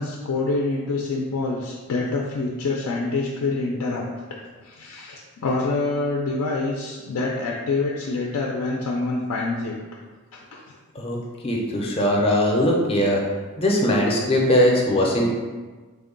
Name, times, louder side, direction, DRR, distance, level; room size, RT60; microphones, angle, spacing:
voice 1, 0.0-4.1 4.6-9.8 10.3-10.6, left 3 dB, 80° left, -2 dB, 0.4 m, -26 dB
voice 2, 11.4-13.2 13.6-15.3, left 1 dB, 25° left, -1 dB, 0.5 m, -20 dB
3.4 x 2.2 x 3.7 m, 1.3 s
head